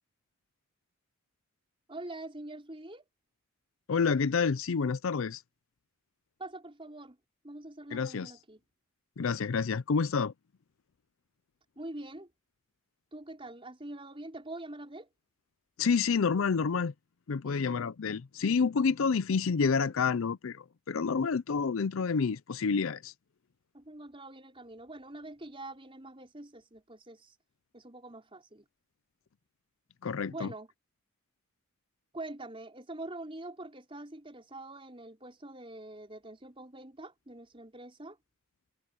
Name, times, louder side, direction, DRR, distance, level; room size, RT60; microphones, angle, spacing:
voice 1, 1.9-3.0 6.4-7.2 7.4-8.6 11.7-12.3 13.1-15.1 17.4-17.5 23.7-27.3 27.7-28.6 30.3-30.7 32.1-38.2, right 2 dB, 25° right, 5.1 m, -44 dB
voice 2, 3.9-5.4 7.9-8.3 9.2-10.3 15.8-16.9 17.3-23.1 30.0-30.5, left 5 dB, 60° left, 0.5 m, -28 dB
head